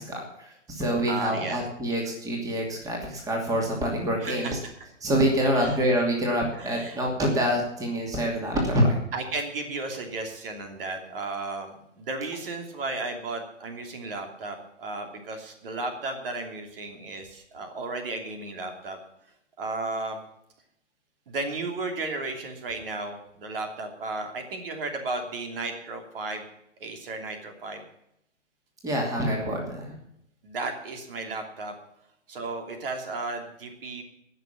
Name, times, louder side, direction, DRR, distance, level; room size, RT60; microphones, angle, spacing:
voice 1, 0.0-4.6 5.0-9.0 28.8-30.0, equal, 10° right, 0 dB, 2.6 m, -26 dB
voice 2, 1.1-1.6 4.2-4.6 5.5-5.8 6.5-7.0 9.1-19.0 19.6-20.2 21.3-26.4 26.8-27.8 30.4-31.7 32.3-34.0, right 3 dB, 50° right, 4 dB, 2.9 m, -34 dB
19.0 x 6.7 x 7.1 m, 0.77 s
figure-of-eight pair, 125°, 37 cm